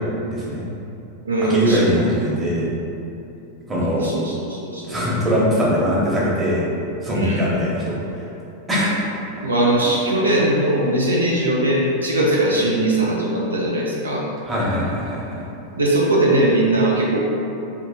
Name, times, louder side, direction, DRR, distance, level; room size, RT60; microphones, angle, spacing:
voice 1, 0.3-0.6 1.5-2.7 3.7-4.1 4.9-6.6 7.0-8.0 8.7-9.0 14.5-15.4, equal, 15° right, -7 dB, 1.0 m, -21 dB
voice 2, 1.2-1.8 3.9-5.0 7.1-7.5 9.4-14.2 15.8-17.2, right 1 dB, 75° right, -4 dB, 0.5 m, -20 dB
3.2 x 2.8 x 3.8 m, 2.8 s
figure-of-eight pair, 90°, 0 cm